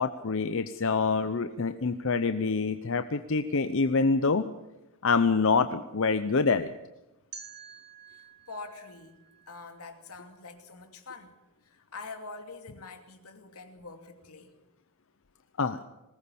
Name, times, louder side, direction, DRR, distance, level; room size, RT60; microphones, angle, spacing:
voice 1, 0.0-4.5 5.0-6.7 15.6-15.8, left 4 dB, 60° left, 10 dB, 0.7 m, -26 dB
sound 1, 7.3-10.3, right 6 dB, 50° right, 1.8 m, -50 dB
voice 2, 8.1-9.2 9.5-11.3 11.6-14.6, left 3 dB, 90° left, 6 dB, 2.6 m, -45 dB
20.5 x 18.5 x 7.1 m, 0.97 s
head